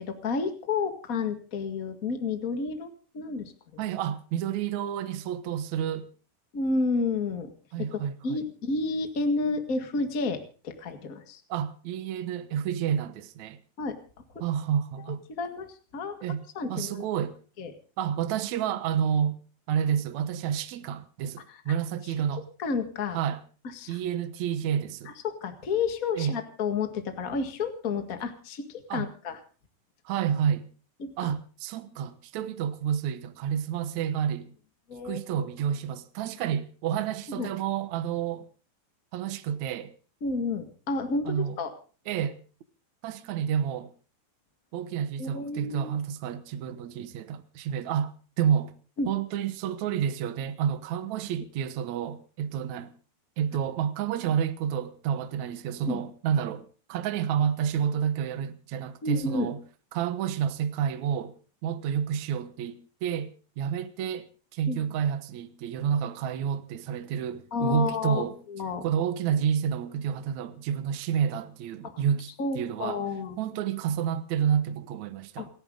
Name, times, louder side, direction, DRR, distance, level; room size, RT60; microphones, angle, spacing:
voice 1, 0.0-2.9 3.1-3.8 6.5-7.5 7.8-11.4 13.8-14.0 15.3-16.2 16.5-17.0 17.6-17.7 21.5-21.6 22.6-23.2 23.7-24.0 25.0-29.4 31.0-31.3 34.9-35.5 37.3-37.5 40.2-41.7 45.2-45.9 49.0-49.1 55.9-56.0 59.0-59.5 64.7-64.8 67.5-68.8 71.8-72.0 72.4-73.4 75.4-75.5, left 4 dB, 70° left, 0.8 m, -31 dB
voice 2, 3.8-6.1 7.7-8.4 11.5-13.6 14.4-15.2 16.2-16.4 16.7-17.3 18.0-19.4 19.7-22.4 23.1-23.4 23.9-25.1 26.2-26.3 28.9-29.1 30.0-30.7 31.2-34.5 35.0-38.5 39.1-39.9 41.2-41.6 42.1-42.4 43.0-43.9 44.7-48.7 49.0-52.9 53.4-59.6 59.9-61.3 61.6-63.3 63.6-64.3 64.5-68.4 68.8-73.0 73.4-75.5, right 8 dB, 80° right, 1.6 m, -29 dB
29.5 x 10.5 x 3.8 m
omnidirectional pair, 5.0 m